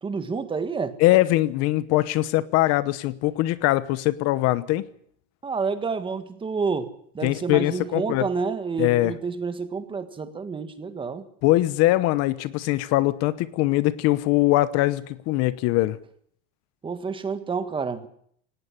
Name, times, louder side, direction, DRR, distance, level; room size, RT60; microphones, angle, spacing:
voice 1, 0.0-1.0 5.4-11.2 16.8-18.1, right 5 dB, 15° right, 10 dB, 1.6 m, -29 dB
voice 2, 1.0-4.9 7.2-8.3 8.8-9.1 11.4-16.0, left 17 dB, 50° left, 16 dB, 1.0 m, -22 dB
18.5 x 18.0 x 9.8 m, 0.65 s
cardioid pair, 160°, 32 cm